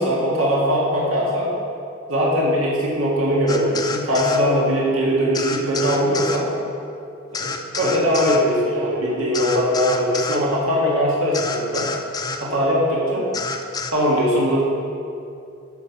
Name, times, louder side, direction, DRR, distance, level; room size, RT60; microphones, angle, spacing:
voice 1, 0.0-1.5 2.1-6.5 7.3-11.9 12.4-13.3 13.9-14.6, equal, 80° right, -5 dB, 1.9 m, -20 dB
sound 1, 3.5-4.4 5.3-6.4 7.3-8.4 9.3-10.4 11.3-12.4 13.3-13.9, left 4 dB, 20° left, 0.5 m, -28 dB
12.5 x 5.6 x 5.7 m, 2.5 s
head